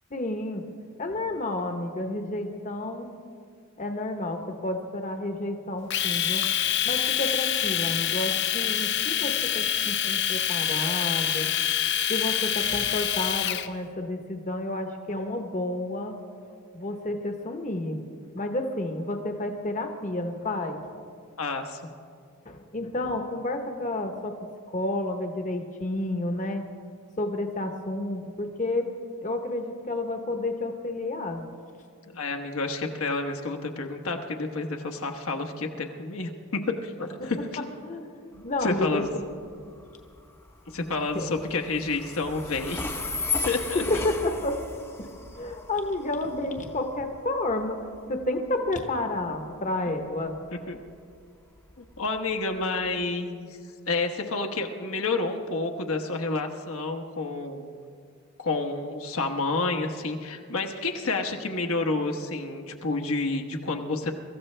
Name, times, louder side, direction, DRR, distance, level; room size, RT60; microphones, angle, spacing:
voice 1, 0.1-0.6 1.0-3.1 3.8-6.5 6.8-11.5 12.1-16.1 16.7-18.0 18.3-20.8 22.4-24.3 24.7-26.6 27.2-28.9 29.2-31.4 37.2-37.3 37.6-38.1 38.4-39.3 41.1-41.3 43.7-44.6 45.3-47.8 48.1-50.3, left 2 dB, 35° left, 5 dB, 1.0 m, -30 dB
Domestic sounds home sounds, 5.9-13.7, left 10 dB, 50° left, 0.6 m, -26 dB
voice 2, 21.4-21.8 32.1-37.7 38.3-39.1 40.7-42.9 43.4-44.0 50.7-50.8 51.8-53.5 53.9-57.7 58.4-64.1, left 3 dB, 70° left, 4 dB, 1.1 m, -29 dB
Train, 38.3-53.1, left 4 dB, 10° left, 0.7 m, -37 dB
24.0 x 14.0 x 3.3 m, 2.2 s
head